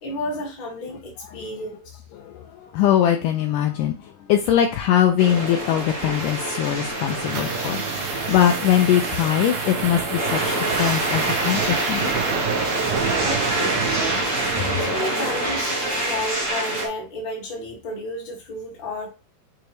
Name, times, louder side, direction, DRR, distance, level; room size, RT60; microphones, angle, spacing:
voice 1, 0.0-2.0 13.2-14.3 14.8-19.1, left 1 dB, 40° left, -2 dB, 2.1 m, -32 dB
voice 2, 2.1-12.1 12.7-13.2, left 10 dB, 80° left, 3 dB, 2.0 m, -22 dB
sound 1, 5.2-16.9, right 1 dB, 65° right, 0.7 m, -26 dB
sound 2, 6.6-15.5, right 8 dB, 85° right, 2.8 m, -30 dB
6.3 x 4.8 x 3.1 m, 0.32 s
omnidirectional pair, 4.2 m